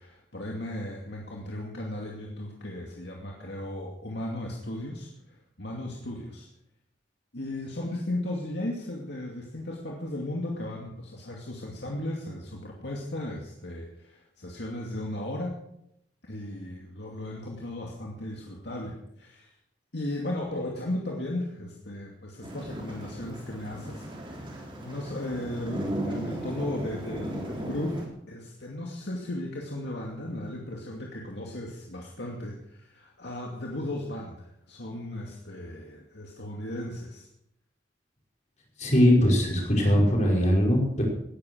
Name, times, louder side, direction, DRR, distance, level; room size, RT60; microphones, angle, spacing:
voice 1, 0.0-6.5 7.3-15.6 16.2-19.5 19.9-37.3, left 1 dB, 60° left, -1 dB, 2.5 m, -36 dB
sound 1, 22.4-28.1, right 1 dB, 25° right, 3.9 m, -36 dB
voice 2, 38.8-41.0, equal, 40° left, -2 dB, 5.7 m, -21 dB
18.5 x 11.0 x 6.4 m, 0.76 s
head